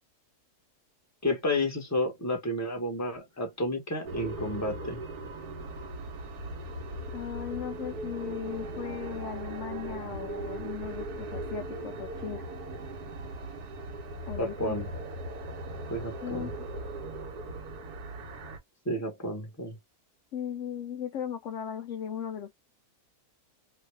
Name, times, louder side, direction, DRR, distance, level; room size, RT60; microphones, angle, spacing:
voice 1, 1.2-5.0 14.4-14.9 15.9-16.5 18.8-19.8, left 1 dB, 10° left, 1.0 m, -31 dB
sound 1, 4.1-18.6, right 2 dB, 80° right, 1.4 m, -39 dB
voice 2, 7.1-12.4 14.3-14.8 16.2-16.7 20.3-22.5, left 8 dB, 70° left, 0.7 m, -37 dB
3.2 x 2.4 x 3.1 m
omnidirectional pair, 1.6 m